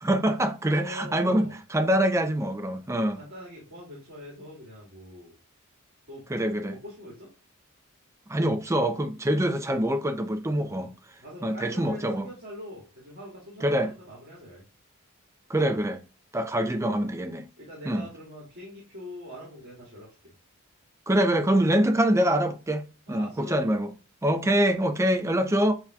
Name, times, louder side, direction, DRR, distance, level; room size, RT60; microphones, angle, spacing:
voice 1, 0.0-3.2 6.3-6.8 8.3-10.9 11.4-12.3 13.6-13.9 15.5-16.0 16.3-17.4 17.9-18.0 21.1-23.9 24.2-25.7, right 1 dB, 15° right, 0.4 m, -25 dB
voice 2, 0.6-1.6 3.0-5.3 6.1-7.3 10.6-10.8 11.2-14.6 16.5-17.1 17.6-20.3 23.1-23.6, equal, 50° right, 1.9 m, -44 dB
7.0 x 2.7 x 2.3 m
head